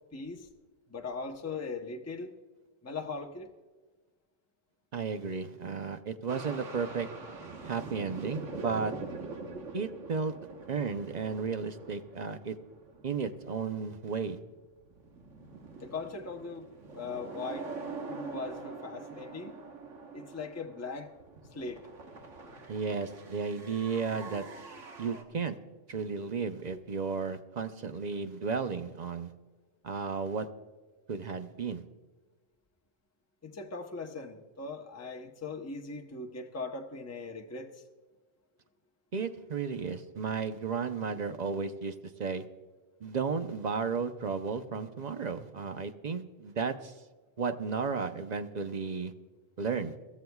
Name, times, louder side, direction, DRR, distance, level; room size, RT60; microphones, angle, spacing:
voice 1, 0.1-0.5 0.9-2.4 2.8-3.5 9.5-9.6 15.8-16.7 16.9-19.6 20.1-21.1 21.5-21.9 33.4-37.7, left 4 dB, 15° left, 3 dB, 0.8 m, -40 dB
voice 2, 4.9-7.1 7.6-8.9 9.7-10.3 10.7-12.6 13.0-14.4 22.7-24.4 25.0-25.6 25.9-29.3 29.8-30.5 31.1-31.8 39.1-41.9 42.2-42.4 43.0-46.9 47.4-49.1 49.6-49.9, right 5 dB, 45° right, 8 dB, 0.6 m, -33 dB
sound 1, 6.3-14.1 14.4-25.2, right 4 dB, 75° right, 1.6 m, -44 dB
22.0 x 14.0 x 2.3 m, 1.3 s
omnidirectional pair, 1.3 m